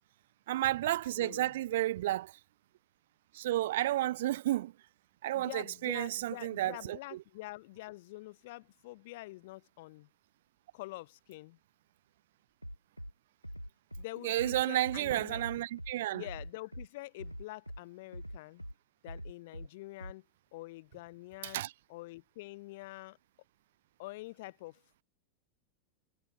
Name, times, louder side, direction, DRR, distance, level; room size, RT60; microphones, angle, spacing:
voice 1, 0.5-2.3 3.3-4.7 5.2-7.0 14.2-16.2 21.4-21.7, right 14 dB, 55° right, 0.7 m, -31 dB
voice 2, 1.2-1.6 5.3-10.1 10.7-11.6 14.0-15.4 16.1-18.6 19.0-20.2 20.5-21.6 21.9-23.2 24.0-24.8, left 20 dB, 50° left, 0.6 m, -46 dB
Bass drum, 12.6-13.1 13.4-14.0 14.4-15.0 15.3-15.9 16.2-16.9 17.2-17.8 18.1-18.7 19.1-19.7 20.0-20.1, equal, 90° right, 1.5 m, -43 dB
figure-of-eight pair, 90°, 0 cm